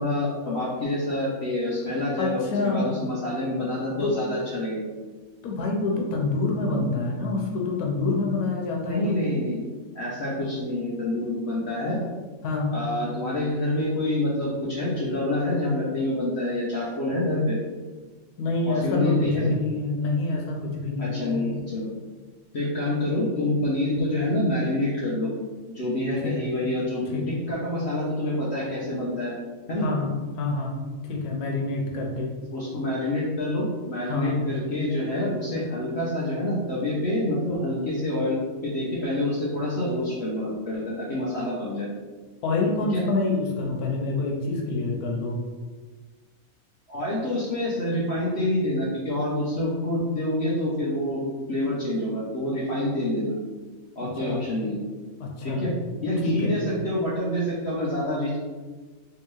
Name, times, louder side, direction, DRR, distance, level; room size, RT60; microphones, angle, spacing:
voice 1, 0.0-4.9 8.8-9.7 9.9-12.0 12.7-17.6 18.7-19.5 21.0-21.9 22.5-25.3 25.7-29.3 29.7-29.9 32.5-41.9 42.9-43.0 46.9-51.2 51.5-53.3 54.0-54.8 55.4-55.7 56.0-58.4, left 1 dB, 55° left, -6 dB, 0.8 m, -27 dB
voice 2, 2.2-3.0 4.0-4.2 5.4-9.2 12.4-12.7 18.4-21.3 26.2-26.3 27.1-27.2 29.8-30.1 30.4-30.7 31.1-32.3 34.1-34.3 42.4-45.4 54.0-54.4 55.2-55.7 56.2-56.5, left 3 dB, 90° left, 0 dB, 1.2 m, -27 dB
3.5 x 2.9 x 3.0 m, 1.4 s
omnidirectional pair, 1.6 m